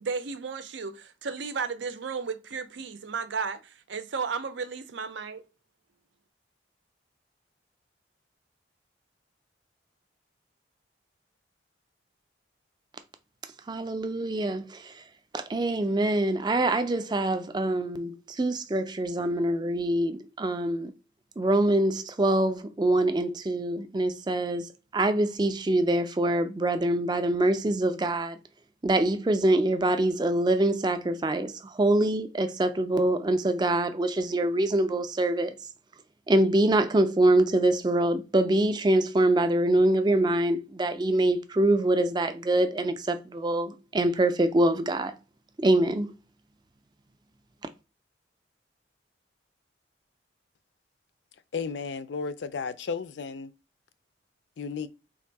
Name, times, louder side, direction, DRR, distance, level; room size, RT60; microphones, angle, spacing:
voice 1, 0.0-5.4, right 5 dB, 75° right, 0.6 m, -34 dB
voice 2, 13.7-15.0 15.3-20.9 21.4-28.4 28.8-35.5 36.3-45.1 45.6-46.1, right 1 dB, 20° right, 0.4 m, -25 dB
voice 3, 51.5-53.5 54.6-54.9, left 5 dB, 70° left, 0.4 m, -33 dB
3.5 x 2.6 x 4.6 m
head